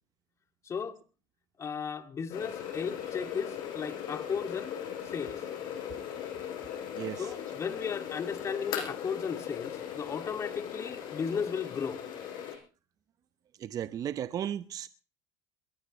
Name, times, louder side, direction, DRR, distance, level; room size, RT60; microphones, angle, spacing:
voice 1, 0.6-1.0 1.6-4.8 5.0-5.4 7.2-12.0, left 6 dB, 35° left, 2.2 m, -35 dB
sound 1, 2.3-12.6, left 9 dB, 60° left, 5.4 m, -39 dB
voice 2, 7.0-7.3 13.6-14.9, right 10 dB, 40° right, 0.7 m, -35 dB
22.0 x 17.5 x 3.1 m
hypercardioid pair, 90°, 9 cm